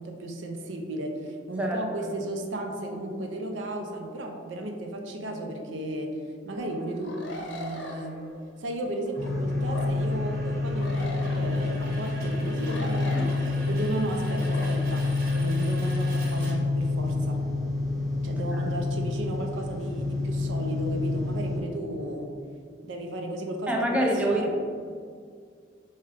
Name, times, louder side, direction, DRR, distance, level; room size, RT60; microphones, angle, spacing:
voice 1, 0.0-6.1 6.5-8.2 8.6-15.0 15.3-17.4 18.2-22.3 22.8-24.5, right 1 dB, 80° right, 3 dB, 0.5 m, -34 dB
voice 2, 1.6-2.1 13.1-13.3 18.5-18.7 23.7-24.5, right 1 dB, 5° right, -1 dB, 0.3 m, -27 dB
sound 1, 6.5-17.1, right 1 dB, 50° right, 1.0 m, -44 dB
sound 2, 7.0-8.0 9.2-9.9 10.8-11.6 12.6-13.4 14.5-14.7, left 1 dB, 70° left, 0.6 m, -39 dB
sound 3, 9.2-21.6, left 3 dB, 15° left, 0.9 m, -28 dB
4.6 x 2.9 x 3.3 m, 2.1 s
head